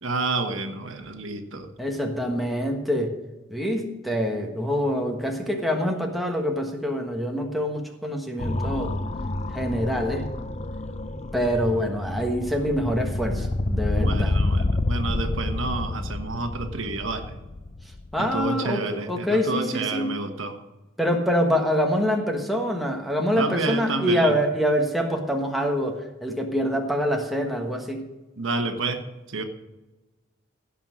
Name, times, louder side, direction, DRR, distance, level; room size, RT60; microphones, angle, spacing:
voice 1, 0.0-1.7 13.9-17.3 18.2-20.6 23.4-24.3 28.4-29.4, right 3 dB, 80° right, 6 dB, 1.3 m, -29 dB
voice 2, 1.8-3.1 3.5-9.0 9.5-10.3 11.3-14.3 18.1-20.2 21.0-28.1, equal, ahead, 1 dB, 1.3 m, -25 dB
sound 1, 8.4-18.5, left 2 dB, 35° left, 0.5 m, -28 dB
16.5 x 5.7 x 6.3 m, 1.1 s
head